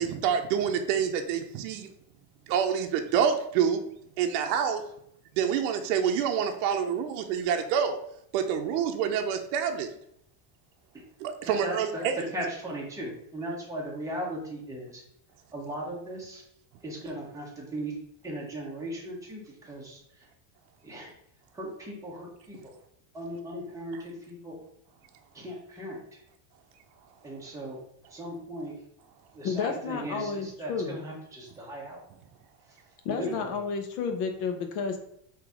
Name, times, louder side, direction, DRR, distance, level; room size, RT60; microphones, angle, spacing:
voice 1, 0.0-1.9 2.5-3.8 4.2-4.8 5.4-8.0 8.3-9.9 11.2-12.2, right 7 dB, 60° right, 4 dB, 0.6 m, -27 dB
voice 2, 11.4-15.0 15.5-16.4 16.8-17.9 18.2-20.2 20.8-21.1 21.5-22.7 23.1-24.6 25.3-26.2 27.2-27.8 28.1-28.7 29.3-32.0 32.7-32.8 33.2-33.6, right 1 dB, 5° right, -4 dB, 0.9 m, -37 dB
voice 3, 29.4-31.0 33.0-35.0, left 5 dB, 70° left, 6 dB, 1.0 m, -31 dB
3.8 x 2.9 x 4.6 m, 0.71 s
cardioid pair, 170°, 49 cm